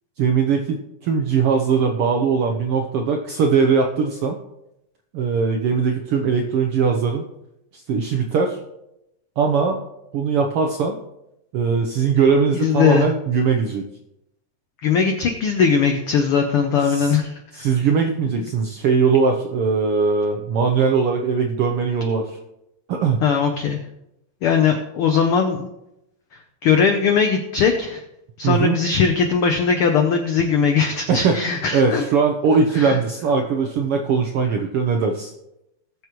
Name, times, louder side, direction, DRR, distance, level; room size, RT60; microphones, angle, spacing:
voice 1, 0.2-4.4 5.1-7.3 7.7-8.6 9.4-9.8 10.1-11.0 11.5-13.8 16.8-17.1 17.5-22.3 22.9-23.2 28.4-28.8 31.1-31.4 31.7-35.3, right 5 dB, 80° right, 3 dB, 1.3 m, -20 dB
voice 2, 12.5-13.1 14.8-17.3 23.2-23.8 24.4-25.7 26.6-28.0 28.4-32.0 32.7-33.0, left 6 dB, 90° left, 5 dB, 1.2 m, -19 dB
19.5 x 7.0 x 3.1 m, 0.86 s
omnidirectional pair, 3.5 m